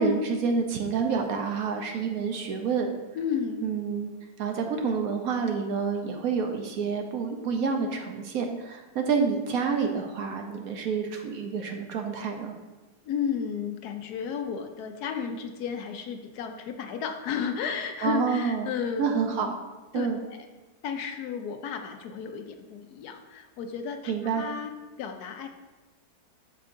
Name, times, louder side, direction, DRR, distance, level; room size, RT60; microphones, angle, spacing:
voice 1, 0.0-2.9 3.6-4.1 4.4-12.5 18.0-18.7 19.0-19.6 19.9-20.2 24.1-24.5, right 5 dB, 65° right, 4 dB, 1.0 m, -28 dB
voice 2, 3.1-3.8 13.0-19.4 19.9-20.5 20.8-24.7 25.0-25.5, left 7 dB, 70° left, 6 dB, 1.1 m, -33 dB
8.0 x 6.7 x 2.6 m, 1.2 s
omnidirectional pair, 1.8 m